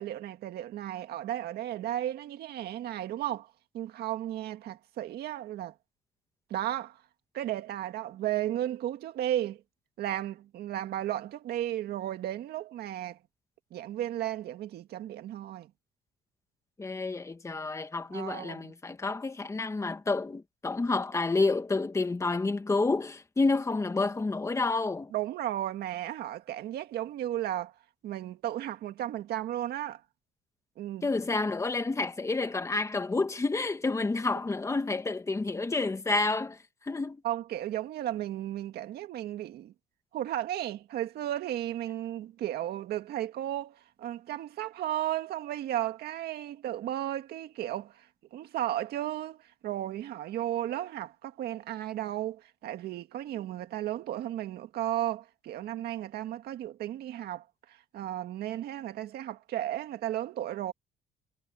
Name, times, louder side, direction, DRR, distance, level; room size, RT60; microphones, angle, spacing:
voice 1, 0.0-5.7 6.5-7.0 7.3-9.6 10.0-13.2 13.7-15.7 18.1-18.7 25.1-27.7 28.0-30.0 30.8-31.1 37.2-39.7 40.1-48.1 48.3-60.7, right 12 dB, 70° right, 1.9 m, -34 dB
voice 2, 16.8-25.1 31.0-37.2, left 3 dB, 15° left, 1.8 m, -29 dB
cardioid pair, 110°, 17 cm